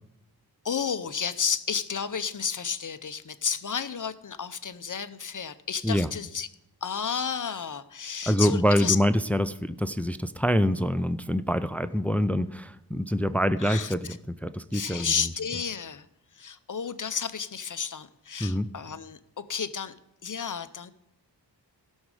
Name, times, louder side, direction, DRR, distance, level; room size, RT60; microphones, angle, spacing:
voice 1, 0.6-6.5 6.8-9.0 13.6-13.9 14.7-16.1 16.3-19.9 20.2-20.9, left 6 dB, 50° left, 12 dB, 0.6 m, -31 dB
voice 2, 8.3-15.3 18.4-18.7, equal, 5° left, 13 dB, 0.4 m, -25 dB
16.0 x 6.3 x 4.9 m, 0.86 s
wide cardioid pair, 95°, 41 cm